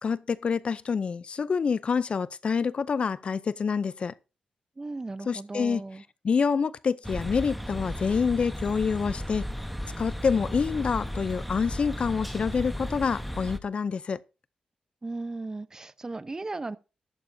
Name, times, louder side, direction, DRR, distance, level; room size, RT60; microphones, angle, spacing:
voice 1, 0.0-4.1 5.3-5.8 6.2-9.4 10.0-14.2, left 5 dB, 50° left, 0.5 m, -27 dB
voice 2, 4.8-6.0 15.0-16.8, right 3 dB, 25° right, 0.7 m, -36 dB
sound 1, 7.0-13.6, equal, ahead, 1.0 m, -35 dB
13.5 x 12.0 x 2.7 m
cardioid pair, 95°, 2 cm